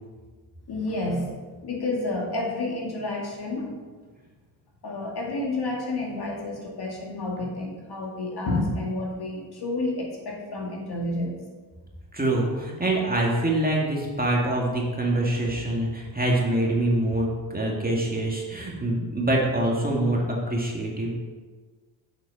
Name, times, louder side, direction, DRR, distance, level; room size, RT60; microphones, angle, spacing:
voice 1, 0.7-1.3 1.6-3.7 4.8-11.4, left 2 dB, 50° left, -2 dB, 2.2 m, -30 dB
voice 2, 12.1-21.1, right 1 dB, 20° right, -2 dB, 2.1 m, -25 dB
7.3 x 6.0 x 4.2 m, 1.4 s
hypercardioid pair, 45°, 49 cm